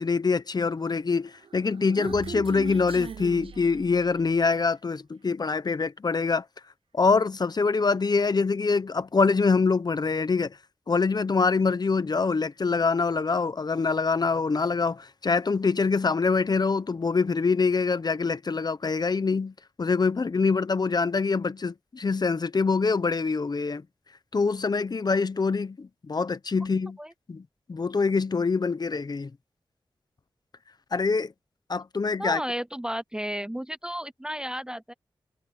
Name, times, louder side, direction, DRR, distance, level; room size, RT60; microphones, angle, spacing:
voice 1, 0.0-6.4 6.9-10.6 10.9-23.8 24.3-27.0 27.3-27.4 27.7-29.3 30.9-31.3 31.7-32.4, left 4 dB, 50° left, 0.8 m, -25 dB
Human voice, 1.4-4.4, right 7 dB, 80° right, 0.5 m, -40 dB
voice 2, 32.2-34.9, equal, 10° right, 0.4 m, -33 dB
wide cardioid pair, 80°, 9 cm